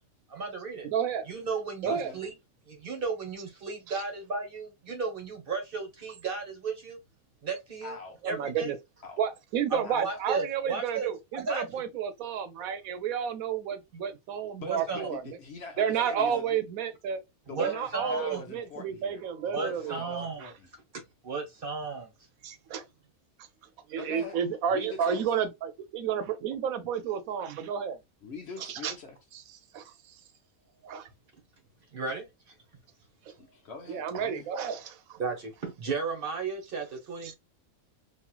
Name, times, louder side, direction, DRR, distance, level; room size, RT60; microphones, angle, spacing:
voice 1, 0.3-0.9 1.3-2.3 2.7-7.0 7.4-8.0 8.2-8.7 9.7-11.1 11.3-11.8 14.7-15.1 15.9-16.3 17.5-18.4 19.5-20.5 21.2-22.1 31.9-32.3 35.2-37.3, right 4 dB, 45° right, 0.9 m, -34 dB
voice 2, 0.8-1.2 1.8-2.1 8.2-8.8 9.2-15.2 15.8-17.2 17.6-20.5 22.4-22.8 23.9-28.0 28.6-28.9 29.7-29.8 30.8-31.1 33.9-35.2, right 7 dB, 75° right, 1.0 m, -31 dB
voice 3, 1.8-2.2 7.8-8.2 9.0-9.2 9.8-10.3 14.6-16.6 17.5-20.7 24.0-24.4 24.7-25.2 28.2-29.2 33.4-34.5, left 4 dB, 60° left, 0.8 m, -43 dB
3.0 x 2.6 x 2.2 m
omnidirectional pair, 1.5 m